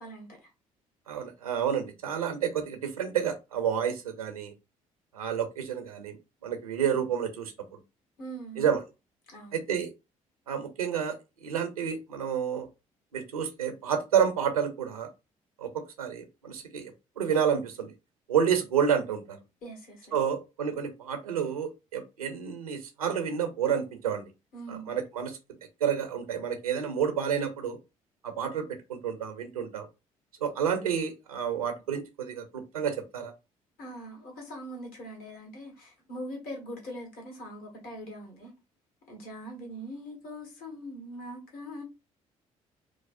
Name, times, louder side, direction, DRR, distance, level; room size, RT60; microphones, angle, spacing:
voice 1, 0.0-0.5 8.2-8.7 9.3-9.6 19.6-20.1 24.5-24.9 33.8-38.5 39.1-41.8, right 1 dB, 55° left, 1.3 m, -42 dB
voice 2, 1.1-4.5 5.1-6.2 6.4-7.5 8.6-8.8 9.5-9.9 10.5-11.1 11.4-12.7 13.1-15.1 15.6-17.9 18.3-19.4 20.1-24.2 24.7-25.4 25.8-27.8 28.2-29.9 30.4-33.3, right 8 dB, 85° right, 0.5 m, -29 dB
4.7 x 2.0 x 2.5 m
figure-of-eight pair, 45°, 18 cm